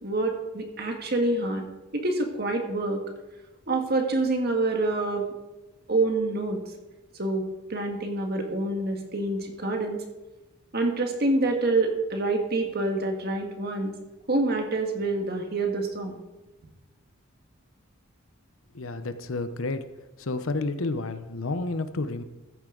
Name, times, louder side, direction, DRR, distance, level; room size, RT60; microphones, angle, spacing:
voice 1, 0.0-1.6 1.9-3.0 3.7-5.3 5.9-6.6 7.2-10.0 10.7-13.9 14.3-16.2, right 2 dB, 50° right, 3 dB, 1.7 m, -27 dB
voice 2, 18.7-19.8 20.2-22.2, left 2 dB, 75° left, 10 dB, 0.8 m, -30 dB
14.0 x 9.4 x 3.9 m, 1.1 s
head